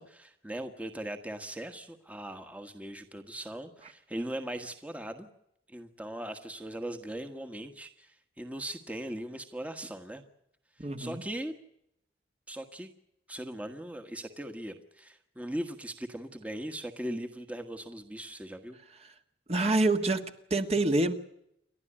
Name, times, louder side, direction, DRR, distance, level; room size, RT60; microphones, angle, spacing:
voice 1, 0.0-5.3 5.7-10.2 11.0-11.5 12.5-12.9 13.3-18.8, right 1 dB, 5° right, 7 dB, 1.4 m, -39 dB
voice 2, 10.8-11.2 19.0-19.1 19.5-21.1, right 2 dB, 35° right, 6 dB, 1.5 m, -27 dB
29.0 x 12.5 x 10.0 m, 0.78 s
head